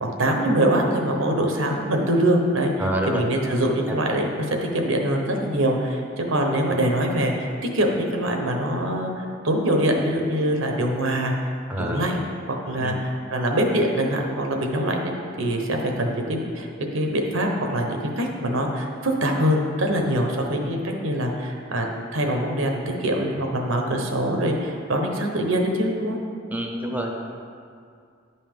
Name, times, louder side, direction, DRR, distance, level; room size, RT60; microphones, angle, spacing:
voice 1, 0.0-2.7 3.1-7.5 7.7-11.3 11.8-12.2 12.7-15.1 15.4-16.7 16.9-26.2, right 1 dB, 85° right, 2 dB, 1.0 m, -23 dB
voice 2, 2.8-3.2 3.9-4.0 11.7-12.0 12.8-13.0 26.5-27.2, right 1 dB, 10° right, 0 dB, 0.8 m, -27 dB
9.8 x 5.5 x 3.6 m, 2.3 s
head